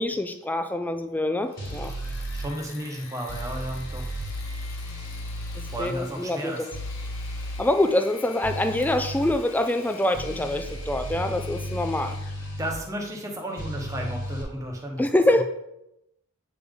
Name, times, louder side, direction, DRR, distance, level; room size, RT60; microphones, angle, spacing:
voice 1, 0.0-1.9 5.8-6.7 7.6-12.2 15.0-15.4, left 1 dB, 10° left, 8 dB, 0.3 m, -25 dB
Engine / Mechanisms, 1.4-12.6, left 5 dB, 65° left, 0.6 m, -47 dB
sound 1, 1.6-2.5 3.3-5.9 6.7-7.6 8.4-9.3 10.1-12.8 13.6-14.4, equal, 40° left, 1.7 m, -34 dB
voice 2, 2.3-4.0 5.7-6.6 12.6-15.1, right 1 dB, 15° right, 0 dB, 0.9 m, -33 dB
8.4 x 3.5 x 3.6 m, 0.86 s
head